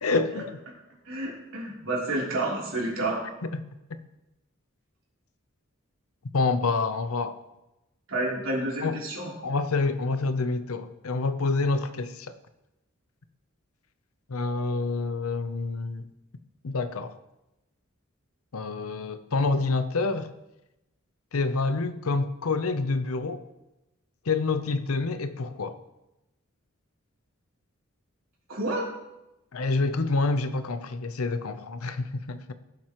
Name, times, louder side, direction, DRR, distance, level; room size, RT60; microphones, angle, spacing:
voice 1, 0.0-0.6 3.4-4.0 6.3-7.4 8.8-9.0 9.4-12.4 14.3-16.1 16.6-17.1 18.5-20.3 21.3-23.4 24.3-25.8 29.5-32.5, left 3 dB, 85° left, 0.7 m, -27 dB
voice 2, 1.0-3.2 8.1-9.3 28.5-28.8, right 2 dB, 65° right, 3.4 m, -29 dB
17.0 x 7.5 x 3.1 m
head